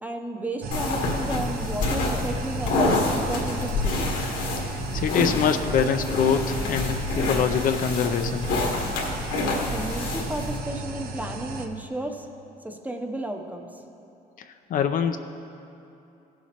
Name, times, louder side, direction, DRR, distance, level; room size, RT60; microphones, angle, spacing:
voice 1, 0.0-4.1 9.7-12.3 12.6-13.8, right 1 dB, 10° right, 3 dB, 0.7 m, -33 dB
sound 1, 0.6-11.7, right 3 dB, 60° right, 0.8 m, -34 dB
sound 2, 0.7-10.6, left 2 dB, 85° left, 1.7 m, -28 dB
voice 2, 4.6-8.5 14.7-15.2, left 7 dB, 55° left, 8 dB, 0.5 m, -24 dB
16.0 x 7.2 x 2.9 m, 2.8 s
cardioid pair, 110°, 17 cm